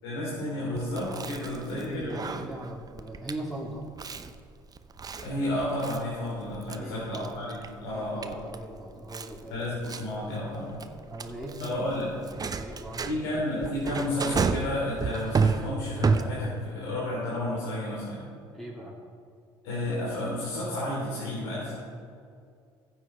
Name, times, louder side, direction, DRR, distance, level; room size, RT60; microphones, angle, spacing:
voice 1, 0.0-2.4 5.2-8.4 9.5-10.8 11.6-12.1 13.0-18.3 19.6-21.8, left 1 dB, 75° left, -7 dB, 3.5 m, -32 dB
Chewing mastication, 0.8-16.7, right 4 dB, 30° right, 0.8 m, -32 dB
voice 2, 1.3-3.8 6.8-7.3 7.9-9.7 10.7-12.1 12.5-13.1 13.8-13.9 18.5-19.0, right 1 dB, ahead, -3 dB, 2.7 m, -40 dB
15.0 x 8.8 x 4.5 m, 2.3 s
hypercardioid pair, 60°, 13 cm